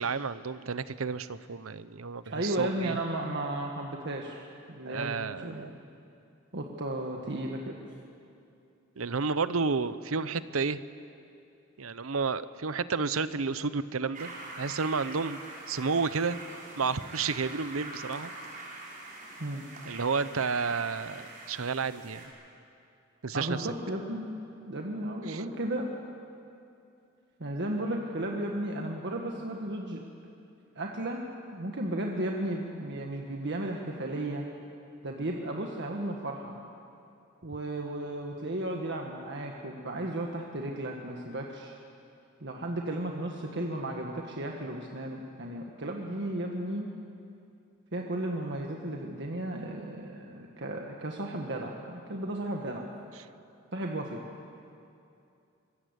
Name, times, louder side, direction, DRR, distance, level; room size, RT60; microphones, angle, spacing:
voice 1, 0.0-3.0 4.8-5.7 9.0-10.8 11.8-14.3 14.6-15.4 15.7-16.4 16.8-18.3 19.8-22.3 23.2-23.7 25.3-25.4, right 4 dB, 85° right, 14 dB, 0.8 m, -31 dB
voice 2, 2.3-5.7 6.5-7.8 19.4-19.6 23.3-24.3 24.6-25.9 27.4-30.0 30.7-31.2 31.5-34.5 35.0-36.5 37.4-41.8 42.4-46.9 47.9-52.8 53.7-54.2, right 1 dB, 60° right, 1 dB, 1.7 m, -34 dB
sound 1, 14.1-22.3, right 2 dB, 40° right, 5.6 m, -44 dB
24.5 x 21.5 x 8.2 m, 2.7 s
head